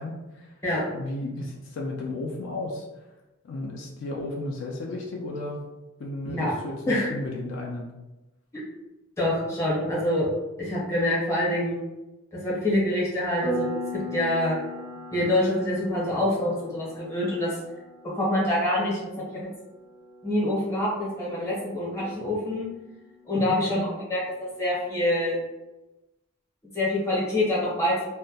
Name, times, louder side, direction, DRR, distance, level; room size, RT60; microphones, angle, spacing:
voice 1, 0.0-0.5 0.9-2.8 3.4-5.6 6.0-7.9 23.3-23.6, left 2 dB, 65° left, -1 dB, 0.3 m, -34 dB
voice 2, 9.2-10.3 10.6-11.8 12.3-14.6 15.1-17.6 18.0-19.5 20.2-22.7 23.3-23.8 24.1-25.4 26.7-28.0, left 1 dB, 15° left, -6 dB, 0.7 m, -26 dB
Piano, 13.4-23.8, left 1 dB, 25° right, 0.4 m, -39 dB
2.1 x 2.1 x 2.7 m, 1.0 s
head